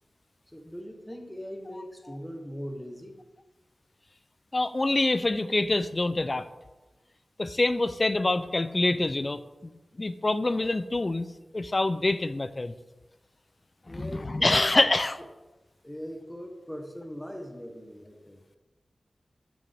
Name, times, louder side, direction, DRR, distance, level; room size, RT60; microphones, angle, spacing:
voice 1, 0.5-3.2 13.9-14.8 15.8-18.4, equal, 5° left, 4 dB, 0.9 m, -40 dB
voice 2, 4.5-6.5 7.4-9.7 10.0-11.3 11.5-12.7 13.9-15.2, left 2 dB, 35° left, 13 dB, 0.3 m, -26 dB
7.4 x 6.2 x 3.4 m, 1.1 s
wide cardioid pair, 90°, 0 cm